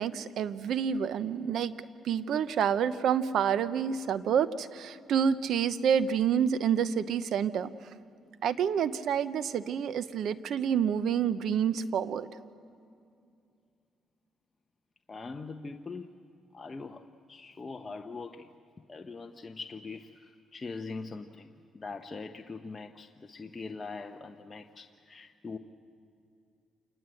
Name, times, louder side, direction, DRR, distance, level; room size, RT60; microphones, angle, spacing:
voice 1, 0.0-1.7 2.0-7.7 8.4-12.3, right 8 dB, 70° right, 14 dB, 0.9 m, -28 dB
voice 2, 15.1-16.1 16.5-18.5 18.9-25.6, left 4 dB, 30° left, 4 dB, 0.9 m, -42 dB
27.5 x 20.5 x 7.8 m, 2.5 s
cardioid pair, 90°, 0 cm